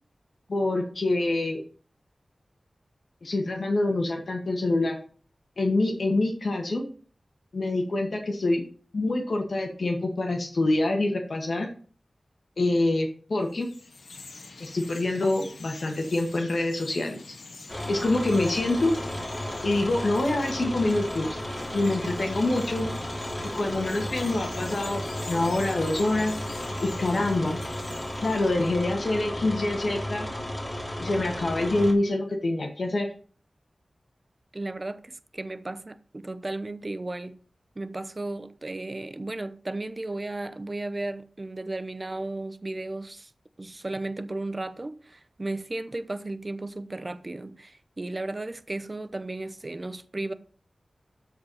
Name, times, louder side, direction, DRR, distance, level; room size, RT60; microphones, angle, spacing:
voice 1, 0.5-1.6 3.2-5.0 5.6-6.9 7.5-8.6 8.9-11.7 12.6-13.7 14.6-17.3 17.9-18.9 19.6-21.4 21.7-22.9 23.4-27.6 28.2-30.3 31.0-33.1, left 2 dB, 65° left, 2.1 m, -26 dB
Chirp tweet, 13.4-29.0, left 3 dB, 85° left, 1.3 m, -45 dB
sound 1, 17.7-31.9, left 1 dB, 25° left, 3.2 m, -34 dB
voice 2, 21.8-22.3 34.5-37.4 37.8-43.3 43.6-50.3, right 2 dB, 35° right, 0.8 m, -35 dB
12.5 x 4.7 x 5.7 m
wide cardioid pair, 85°, 0 cm